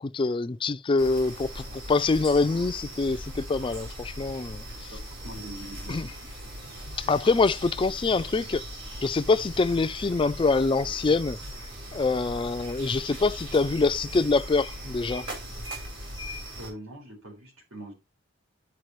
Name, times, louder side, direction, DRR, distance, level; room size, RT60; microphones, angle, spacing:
voice 1, 0.0-4.6 5.9-6.1 7.0-8.6 9.0-11.4 11.9-15.3, left 3 dB, 25° left, 0.4 m, -25 dB
sound 1, 1.0-16.7, equal, 60° right, 4.1 m, -39 dB
voice 2, 4.8-6.1 16.6-17.9, right 1 dB, 85° right, 4.4 m, -43 dB
11.5 x 4.9 x 3.1 m
head